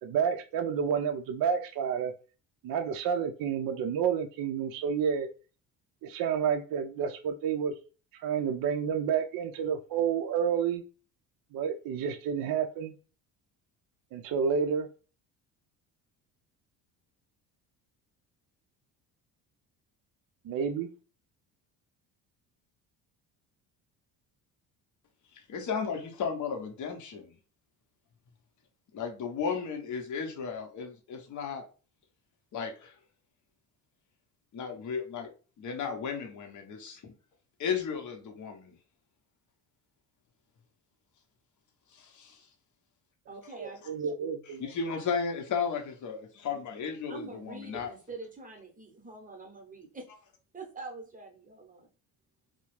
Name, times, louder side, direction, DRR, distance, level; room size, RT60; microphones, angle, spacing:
voice 1, 0.0-2.1 2.6-5.3 6.0-7.7 8.2-10.8 11.5-12.9 14.1-14.9 20.4-20.9 43.6-44.6, right 7 dB, 50° right, 0.4 m, -30 dB
voice 2, 25.3-27.3 28.9-31.7 32.5-33.0 34.5-35.3 35.6-37.1 37.6-38.8 41.9-42.5 44.5-47.9, left 6 dB, 40° left, 0.7 m, -34 dB
voice 3, 43.3-44.1 47.1-50.1 50.5-51.9, right 3 dB, 20° right, 0.8 m, -45 dB
2.2 x 2.1 x 3.0 m
supercardioid pair, 65°, 45 cm